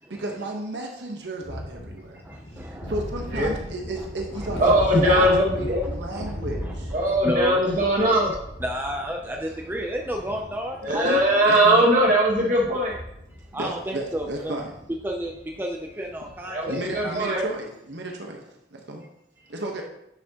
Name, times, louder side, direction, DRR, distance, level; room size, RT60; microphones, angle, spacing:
voice 1, 0.1-2.2 2.8-4.7 5.0-6.9 10.8-11.9 13.6-14.7 16.7-18.4 18.7-19.0 19.5-19.8, right 2 dB, 75° right, 1 dB, 1.1 m, -33 dB
sound 1, 1.4-17.2, equal, 70° left, 2.3 m, -37 dB
voice 2, 2.2-3.0 4.0-4.1 4.6-4.8 6.1-7.6 8.0-8.2 8.6-11.2 13.5-14.6 15.0-17.5 19.4-19.5, right 1 dB, 10° right, 1 dB, 0.5 m, -32 dB
voice 3, 4.6-5.8 6.9-8.3 10.8-13.0 16.5-17.4, right 1 dB, 45° right, -3 dB, 2.0 m, -20 dB
9.6 x 5.9 x 2.9 m, 0.81 s
head